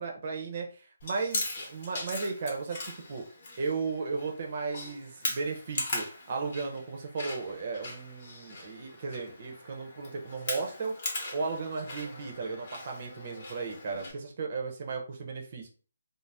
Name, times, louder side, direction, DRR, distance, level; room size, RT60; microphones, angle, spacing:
voice 1, 0.0-3.2 3.6-11.0 11.3-15.7, right 4 dB, 45° right, 2 dB, 0.7 m, -35 dB
Chewing mastication, 1.0-14.1, left 2 dB, 40° left, 1.0 m, -39 dB
2.5 x 2.0 x 3.3 m, 0.39 s
hypercardioid pair, 160°, 0 cm